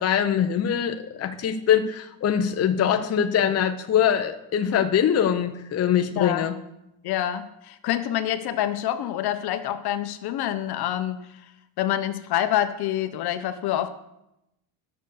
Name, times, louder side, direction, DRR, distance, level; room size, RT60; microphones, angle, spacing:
voice 1, 0.0-6.5, left 9 dB, 35° left, 7 dB, 0.9 m, -23 dB
voice 2, 6.1-6.5 7.0-11.3 11.8-13.9, left 12 dB, 55° left, 10 dB, 1.1 m, -27 dB
11.0 x 7.1 x 6.6 m, 0.87 s
supercardioid pair, 110°, 46 cm